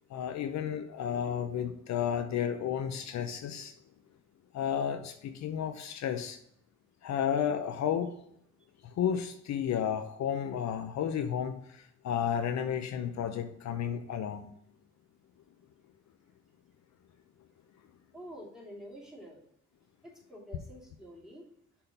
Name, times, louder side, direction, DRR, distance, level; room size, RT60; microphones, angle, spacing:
voice 1, 0.1-3.7 4.5-6.4 7.0-8.1 8.8-14.5, left 8 dB, 65° left, 0.7 m, -32 dB
voice 2, 18.1-19.4 20.0-21.4, equal, ahead, 2.7 m, -48 dB
6.8 x 3.8 x 5.6 m
cardioid pair, 90°, 30 cm